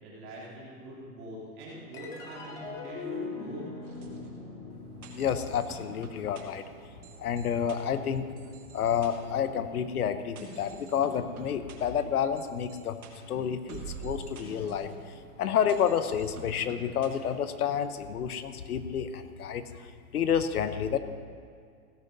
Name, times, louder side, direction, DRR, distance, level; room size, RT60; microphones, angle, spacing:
voice 1, 0.0-3.6, right 1 dB, 30° right, -6 dB, 3.2 m, -43 dB
sound 1, 1.9-8.6, left 4 dB, 10° left, 0.4 m, -43 dB
sound 2, 3.8-17.7, right 4 dB, 75° right, 3.0 m, -48 dB
voice 2, 5.2-6.6 7.2-8.3 8.7-13.0 13.3-21.0, left 8 dB, 85° left, 11 dB, 1.0 m, -30 dB
16.5 x 8.1 x 5.4 m, 2.2 s
hypercardioid pair, 145°, 43 cm